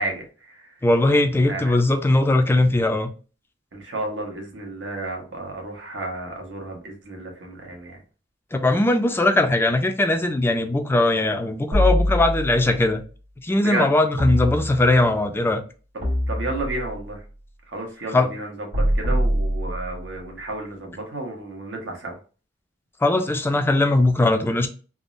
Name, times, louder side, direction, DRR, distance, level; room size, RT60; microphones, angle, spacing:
voice 1, 0.0-0.7 1.5-1.7 3.7-8.0 13.6-13.9 15.9-17.2 17.7-22.2, right 2 dB, 85° right, 1.0 m, -32 dB
voice 2, 0.8-3.1 8.5-13.0 13.4-15.6 18.1-18.3 23.0-24.7, left 2 dB, 15° left, 0.3 m, -20 dB
sound 1, 11.7-12.8 14.2-15.1 16.0-17.1 18.7-20.2, equal, 65° right, 1.4 m, -24 dB
3.5 x 2.0 x 2.5 m
head